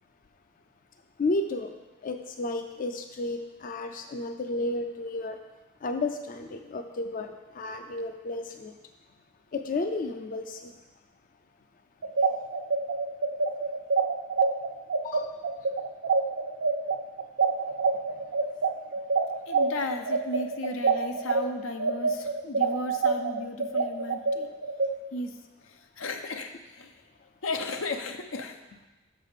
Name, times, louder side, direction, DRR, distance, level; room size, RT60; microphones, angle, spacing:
voice 1, 1.2-1.7 2.0-5.4 5.8-8.7 9.5-10.7 15.0-15.3, left 2 dB, 45° left, 6 dB, 0.4 m, -32 dB
sound 1, 12.0-21.4 21.8-24.9, right 4 dB, 55° right, 0.5 m, -25 dB
voice 2, 19.5-24.5 25.1-27.0 27.4-28.8, left 2 dB, 85° left, 6 dB, 0.7 m, -35 dB
6.5 x 4.8 x 6.6 m, 1.1 s
head